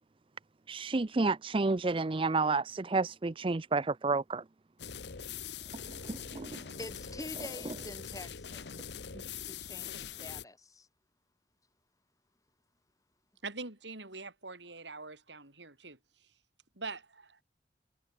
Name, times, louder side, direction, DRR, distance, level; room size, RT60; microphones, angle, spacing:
voice 1, 0.7-4.4 6.1-6.6, right 3 dB, 30° right, 0.5 m, -30 dB
sound 1, 4.8-10.4, left 8 dB, 75° left, 1.1 m, -43 dB
voice 2, 6.8-8.9 9.4-10.9, left 1 dB, 20° left, 7.2 m, -46 dB
voice 3, 13.4-16.3 16.7-17.4, right 3 dB, 85° right, 6.6 m, -44 dB
head